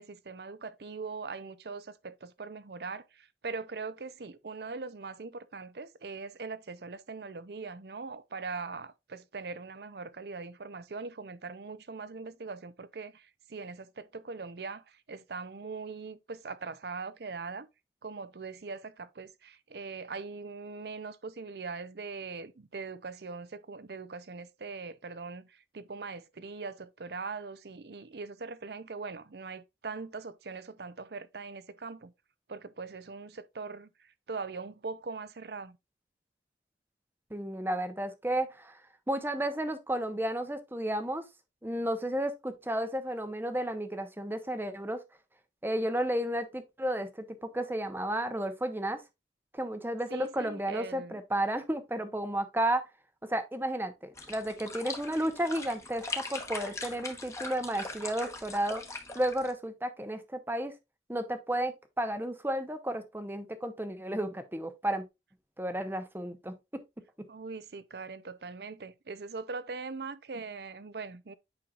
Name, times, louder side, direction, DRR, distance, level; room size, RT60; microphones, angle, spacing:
voice 1, 0.0-17.7 18.0-32.1 32.5-33.9 34.3-35.8 50.1-51.2 67.3-71.3, right 4 dB, 65° right, 0.6 m, -41 dB
voice 2, 37.3-38.8 39.1-41.3 41.6-45.0 45.6-49.0 49.5-52.8 53.2-58.8 59.1-60.7 61.1-65.0 65.6-66.5 67.2-67.3, right 1 dB, 10° right, 0.8 m, -32 dB
sound 1, 54.1-59.5, left 3 dB, 15° left, 1.1 m, -41 dB
8.8 x 5.5 x 2.4 m
head